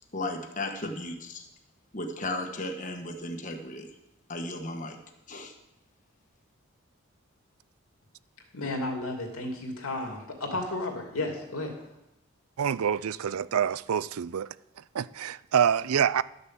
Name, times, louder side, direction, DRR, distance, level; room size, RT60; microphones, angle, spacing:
voice 1, 0.0-1.5 1.9-3.9 4.3-5.0 5.3-5.5, left 2 dB, 35° left, 1.3 m, -35 dB
voice 2, 8.5-11.7, left 2 dB, 85° left, 2.6 m, -33 dB
voice 3, 12.6-14.5 14.9-16.2, right 8 dB, 85° right, 0.4 m, -26 dB
12.5 x 6.7 x 7.4 m
head